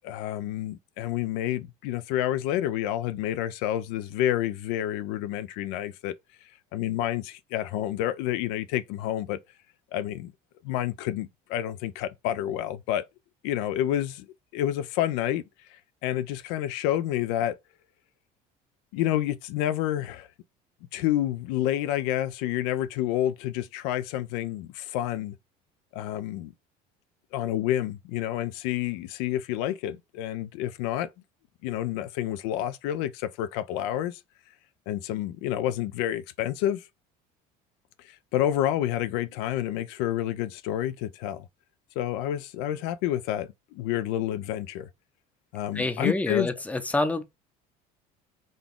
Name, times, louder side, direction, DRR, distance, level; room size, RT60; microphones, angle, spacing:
voice 1, 0.0-6.1 6.7-9.4 9.9-10.3 10.6-13.0 13.4-14.3 14.5-15.4 15.7-17.6 18.9-20.3 20.9-25.3 25.9-26.5 27.3-31.1 31.6-34.2 34.9-36.8 38.1-41.4 42.0-44.9 45.5-46.5, left 12 dB, 80° left, 0.4 m, -29 dB
voice 2, 45.7-47.2, left 2 dB, 10° left, 0.5 m, -27 dB
3.9 x 2.3 x 3.5 m
supercardioid pair, 105°, 18 cm